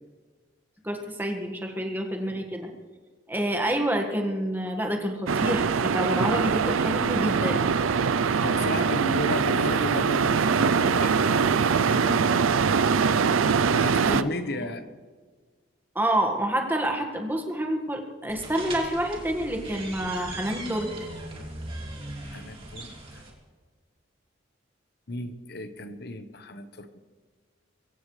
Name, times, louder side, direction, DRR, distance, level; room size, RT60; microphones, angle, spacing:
voice 1, 0.8-2.7 3.3-7.7 14.1-14.2 15.9-20.9, right 1 dB, 10° right, 3 dB, 1.7 m, -28 dB
sound 1, 5.3-14.2, right 5 dB, 90° right, 0.5 m, -23 dB
voice 2, 8.3-12.3 13.7-14.8 22.2-23.2 25.1-27.0, left 1 dB, 55° left, 9 dB, 1.1 m, -34 dB
sound 2, 18.3-23.3, right 2 dB, 25° right, 2.8 m, -39 dB
23.0 x 16.5 x 3.3 m, 1.5 s
head